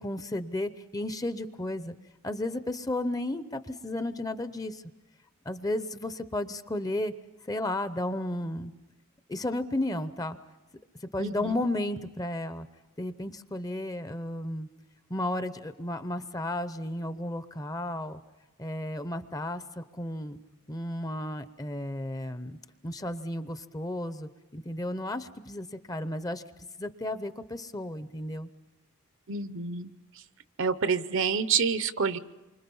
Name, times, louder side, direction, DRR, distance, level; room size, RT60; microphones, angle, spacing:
voice 1, 0.0-1.9 2.2-4.8 5.5-7.1 7.5-8.7 9.3-10.4 11.1-12.7 13.0-14.7 15.1-18.2 18.6-20.4 20.7-22.6 22.8-26.4 26.8-28.5, left 1 dB, 15° left, 12 dB, 0.7 m, -33 dB
voice 2, 11.2-11.7 29.3-29.9 30.6-32.2, right 5 dB, 60° right, 13 dB, 0.8 m, -28 dB
28.0 x 25.0 x 5.5 m, 1.1 s
head